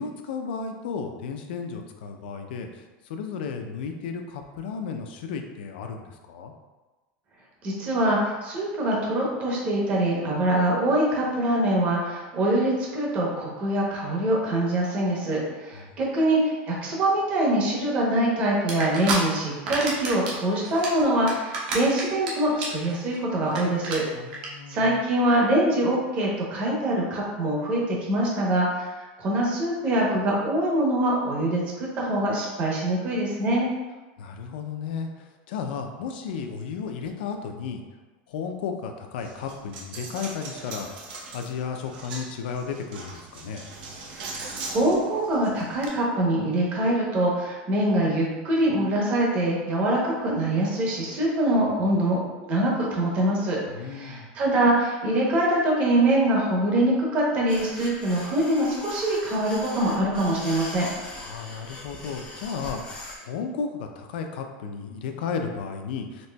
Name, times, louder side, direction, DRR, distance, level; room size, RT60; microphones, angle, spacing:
voice 1, 0.0-6.5 15.7-15.9 24.2-25.0 34.2-37.8 38.3-41.1 41.3-43.7 53.7-54.3 61.2-66.3, left 5 dB, 80° left, 5 dB, 0.4 m, -34 dB
voice 2, 7.6-24.0 24.7-33.7 44.1-52.2 52.5-60.9, right 1 dB, 25° right, -3 dB, 0.7 m, -24 dB
sound 1, 18.7-19.2 19.5-20.3 20.6-22.3 22.6-22.9 23.1-23.2 23.5-23.6 23.8-24.0 24.3-24.5, right 4 dB, 60° right, 0.9 m, -28 dB
Coin (dropping), 39.2-45.9, right 3 dB, 90° right, 0.7 m, -40 dB
sound 2, 57.5-63.2, left 2 dB, 15° left, 0.5 m, -40 dB
4.1 x 2.9 x 2.2 m, 1.2 s
supercardioid pair, 180°, 5 cm